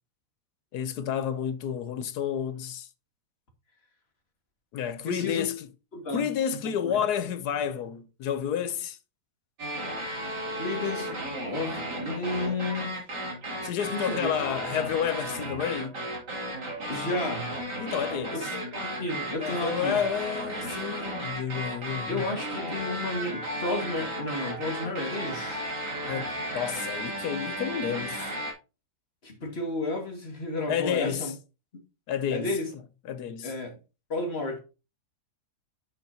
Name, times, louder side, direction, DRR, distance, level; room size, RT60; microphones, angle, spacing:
voice 1, 0.7-2.9 4.7-5.7 6.1-9.0 13.6-16.1 17.8-18.5 19.4-22.2 26.1-28.3 30.7-31.3 32.1-32.5 33.0-33.5, left 8 dB, 70° left, 1.3 m, -30 dB
voice 2, 5.1-5.5 5.9-6.2 6.8-7.0 10.5-13.0 13.9-14.3 16.9-17.5 18.3-18.4 18.7-20.0 22.1-25.6 29.2-31.3 32.3-32.7 33.4-33.8 34.1-34.6, left 2 dB, 35° left, 2.2 m, -32 dB
sound 1, 9.6-28.5, right 1 dB, 85° right, 3.3 m, -34 dB
8.2 x 8.1 x 2.9 m
omnidirectional pair, 1.8 m